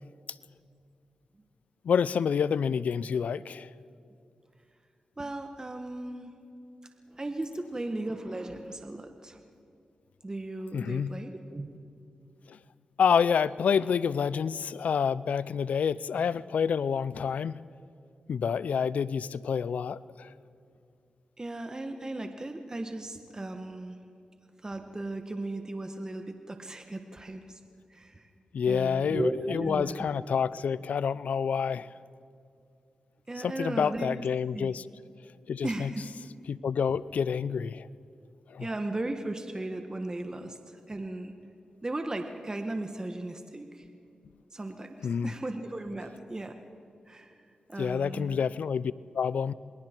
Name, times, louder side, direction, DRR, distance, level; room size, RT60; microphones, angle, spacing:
voice 1, 1.8-3.7 10.7-11.1 12.5-12.6 13.0-17.6 18.3-20.3 28.5-31.9 33.4-34.8 35.5-35.9 36.5-37.9 38.5-38.7 45.0-45.3 47.8-49.5, left 7 dB, 80° left, 19 dB, 0.4 m, -28 dB
voice 2, 5.2-6.3 7.1-9.4 10.2-11.7 21.4-24.0 24.6-27.6 27.9-28.3 28.7-30.1 33.3-34.1 34.5-34.7 35.6-36.1 38.6-40.6 40.9-41.3 41.8-43.9 44.5-46.5 47.1-47.3 47.7-48.5, right 2 dB, 30° right, 5 dB, 1.4 m, -36 dB
28.0 x 21.0 x 4.5 m, 2.4 s
cardioid pair, 55°, 2 cm